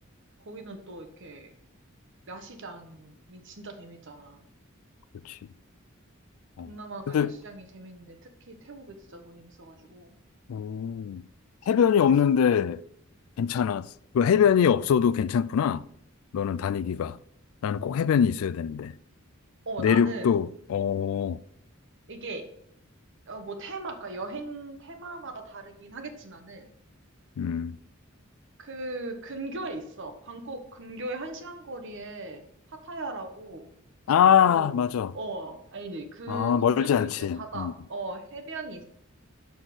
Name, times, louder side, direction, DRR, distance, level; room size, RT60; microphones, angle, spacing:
voice 1, 0.4-1.5 2.3-4.5 6.7-10.2 11.7-12.1 12.4-12.6 19.6-20.3 22.1-22.4 23.3-26.7 28.6-33.7 34.4-34.9 35.1-38.8, right 2 dB, 60° right, 1.1 m, -39 dB
voice 2, 10.5-11.2 11.7-12.8 13.4-15.8 16.3-17.2 17.6-18.9 19.8-21.4 27.4-27.8 34.1-35.1 36.3-37.7, left 8 dB, 85° left, 0.3 m, -23 dB
6.2 x 5.8 x 4.9 m
head